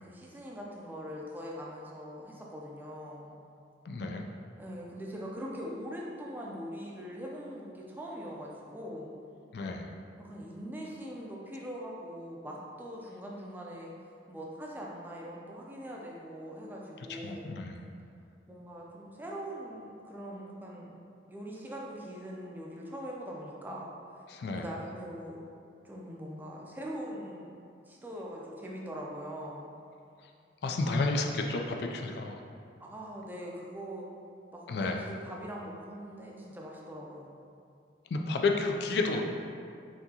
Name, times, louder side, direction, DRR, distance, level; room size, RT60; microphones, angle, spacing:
voice 1, 0.0-3.4 4.6-9.1 10.2-13.9 14.3-17.6 18.5-21.0 21.3-23.9 24.5-25.4 25.8-27.5 27.9-29.7 32.8-34.1 34.5-37.3, equal, 10° right, -3 dB, 0.4 m, -42 dB
voice 2, 3.9-4.2 9.5-9.9 17.1-17.9 24.3-24.6 30.6-32.4 34.7-35.0 38.1-39.3, left 3 dB, 60° left, 3 dB, 0.3 m, -31 dB
5.9 x 2.8 x 2.8 m, 2.5 s
head